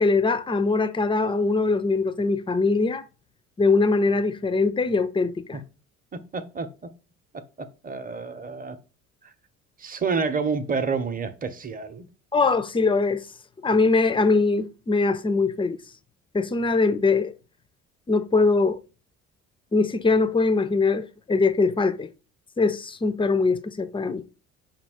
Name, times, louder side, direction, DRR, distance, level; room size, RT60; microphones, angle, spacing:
voice 1, 0.0-3.0 3.6-5.6 12.3-13.2 13.6-15.8 16.3-17.3 18.1-18.8 19.7-22.1 22.6-24.2, left 3 dB, 15° left, 0.4 m, -22 dB
voice 2, 6.1-6.9 7.6-8.8 9.2-9.3 9.8-12.1, right 5 dB, 20° right, 0.7 m, -29 dB
5.2 x 2.4 x 3.5 m
hypercardioid pair, 60°, 39 cm